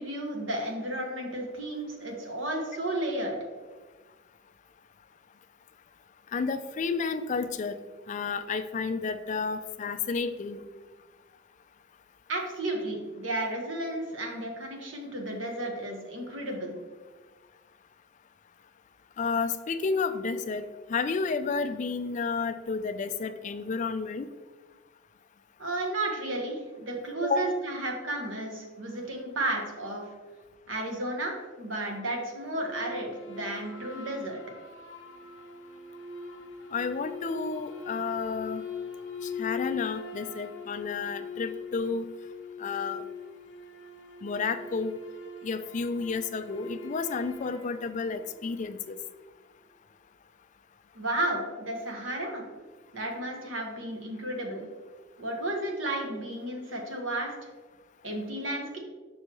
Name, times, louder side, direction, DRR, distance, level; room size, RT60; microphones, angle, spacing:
voice 1, 0.0-3.4 12.3-16.8 25.6-30.0 30.7-34.4 50.9-52.4 52.9-54.7 55.2-57.3 58.0-58.8, right 1 dB, 90° right, 1 dB, 1.3 m, -33 dB
voice 2, 6.3-7.7 8.1-10.6 19.2-20.6 20.9-24.3 27.2-27.5 36.7-38.6 39.2-42.1 42.6-43.0 44.2-44.9 45.4-49.0, left 4 dB, 40° left, 10 dB, 0.4 m, -31 dB
sound 1, 32.4-49.0, left 4 dB, 80° left, 0.9 m, -41 dB
6.5 x 5.4 x 3.0 m, 1.3 s
head